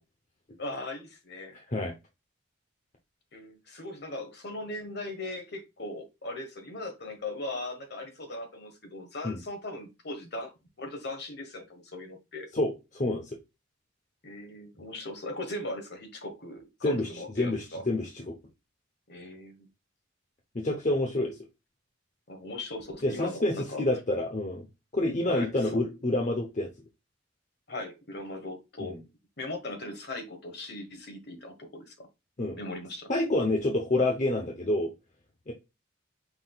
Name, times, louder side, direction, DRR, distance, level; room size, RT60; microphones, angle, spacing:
voice 1, 0.6-1.5 3.3-12.5 14.2-17.8 19.1-19.7 22.3-23.8 25.2-25.8 27.7-29.0 29.4-32.1 32.6-33.1, left 2 dB, 50° left, 1.3 m, -39 dB
voice 2, 1.5-1.9 9.2-9.4 12.5-13.4 16.8-18.3 20.5-21.4 23.0-24.7 24.9-26.7 28.8-29.0 32.4-32.6 33.1-34.9 35.5-35.6, left 1 dB, 35° left, 0.8 m, -28 dB
5.9 x 3.7 x 2.3 m
head